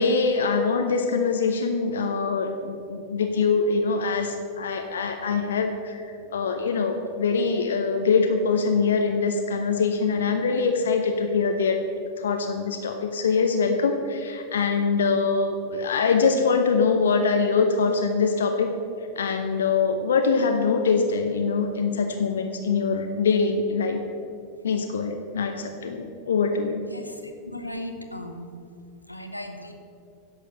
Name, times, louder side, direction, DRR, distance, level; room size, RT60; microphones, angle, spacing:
voice 1, 0.0-11.8 12.2-18.7 19.2-24.0 24.6-26.8, left 4 dB, 65° left, 5 dB, 0.7 m, -23 dB
voice 2, 27.5-28.5 29.1-29.7, left 1 dB, 85° left, 5 dB, 0.9 m, -36 dB
10.5 x 6.7 x 6.6 m, 2.5 s
figure-of-eight pair, 90°, 0 cm